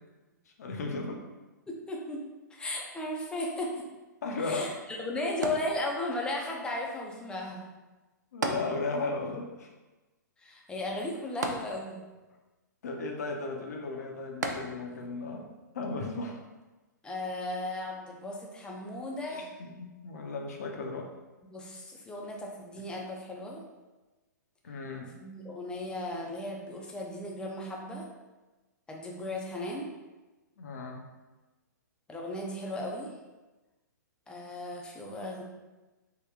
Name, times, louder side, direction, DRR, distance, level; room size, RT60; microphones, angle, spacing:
voice 1, 0.6-1.2 4.2-4.7 8.3-9.7 12.8-15.5 15.7-16.4 19.3-21.1 24.6-25.2 30.6-31.0, left 3 dB, 60° left, 2 dB, 0.6 m, -35 dB
voice 2, 1.7-2.2 2.5-3.8 4.4-4.7 5.0-7.7 10.4-12.0 17.0-19.5 21.5-23.6 25.2-28.1 28.9-29.9 32.1-33.1 34.3-35.4, left 1 dB, 10° left, -1 dB, 0.5 m, -36 dB
sound 1, 5.4-6.3 8.4-9.3 9.6-9.7 11.4-12.3 14.4-15.1 15.8-15.9, right 3 dB, 70° right, 0.4 m, -35 dB
3.6 x 2.2 x 3.5 m, 1.1 s
figure-of-eight pair, 115°, 10 cm